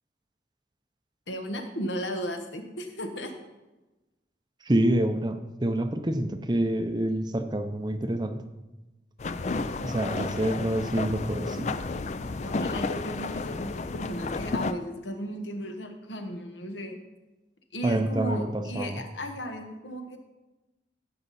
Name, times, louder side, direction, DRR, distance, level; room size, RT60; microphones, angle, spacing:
voice 1, 1.3-3.3 10.1-10.3 12.4-17.0 17.7-20.2, equal, 80° left, 5 dB, 1.3 m, -35 dB
voice 2, 4.6-8.4 9.8-11.7 17.8-19.0, right 1 dB, 25° right, 8 dB, 0.6 m, -27 dB
sound 1, 9.2-14.7, left 3 dB, 40° left, 0.4 m, -32 dB
16.5 x 5.8 x 4.1 m, 1.1 s
head